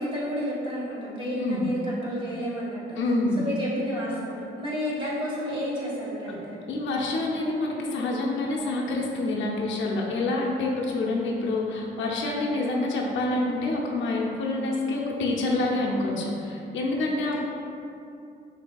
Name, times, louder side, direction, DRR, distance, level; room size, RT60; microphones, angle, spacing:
voice 1, 0.0-3.0 3.4-6.6, equal, 25° right, -7 dB, 1.5 m, -31 dB
voice 2, 3.0-3.4 6.3-6.4 6.7-17.4, left 2 dB, 75° left, -2 dB, 0.6 m, -27 dB
6.0 x 2.7 x 2.3 m, 2.7 s
cardioid pair, 90°, 20 cm